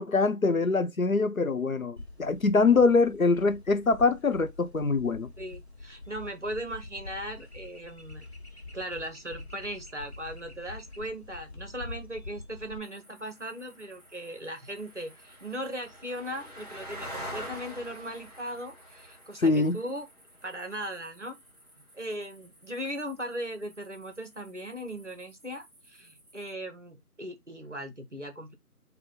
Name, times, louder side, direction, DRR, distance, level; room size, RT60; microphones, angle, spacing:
voice 1, 0.0-5.3 19.4-19.8, left 4 dB, 60° left, 0.5 m, -24 dB
sound 1, 2.0-12.8, left 2 dB, 45° left, 0.9 m, -45 dB
voice 2, 5.4-8.3 8.7-20.1 20.4-21.4 21.9-28.6, equal, 50° right, 0.8 m, -38 dB
sound 2, 12.8-26.5, equal, 25° right, 2.0 m, -47 dB
3.9 x 2.2 x 3.7 m
figure-of-eight pair, 175°, 47 cm